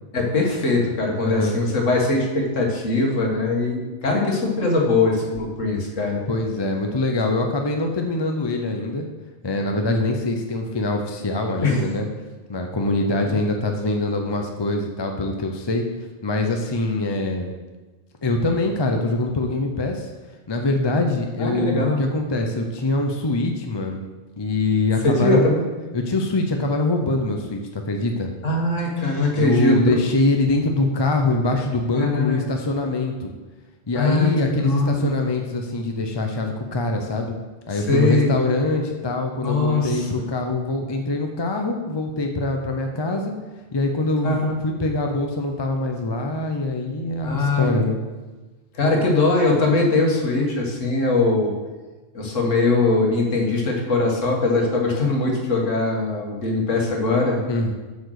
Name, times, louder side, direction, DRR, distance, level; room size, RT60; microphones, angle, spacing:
voice 1, 0.1-6.2 10.1-10.2 11.6-11.8 13.2-13.4 21.4-22.0 25.0-25.6 28.4-29.8 31.9-32.4 33.9-35.2 37.7-38.4 39.4-40.2 44.2-44.5 47.2-47.7 48.7-51.5 52.1-57.4, left 3 dB, 80° left, 0 dB, 1.8 m, -21 dB
voice 2, 1.2-1.5 6.3-9.1 9.4-12.1 12.5-15.8 16.2-17.5 18.2-20.1 20.5-24.0 24.4-25.4 25.9-28.3 29.3-33.3 33.9-37.3 37.7-43.3 43.7-48.0 57.5-57.7, left 2 dB, 30° left, 3 dB, 0.5 m, -23 dB
7.9 x 5.3 x 6.4 m, 1.2 s
omnidirectional pair, 1.3 m